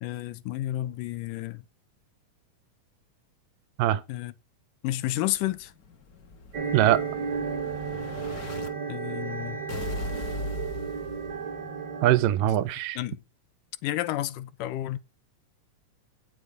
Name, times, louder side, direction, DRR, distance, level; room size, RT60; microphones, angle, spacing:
voice 1, 0.0-1.6 4.1-4.3 4.8-5.7 8.9-9.6 13.0-13.2 13.8-15.0, left 14 dB, 85° left, 2.4 m, -31 dB
Explosion, 5.3-8.7 9.7-11.7, left 2 dB, 50° left, 1.1 m, -38 dB
sound 1, 6.5-12.2, right 6 dB, 55° right, 2.6 m, -33 dB
voice 2, 12.0-13.0, right 13 dB, 85° right, 2.4 m, -22 dB
17.5 x 6.3 x 3.8 m
omnidirectional pair, 3.8 m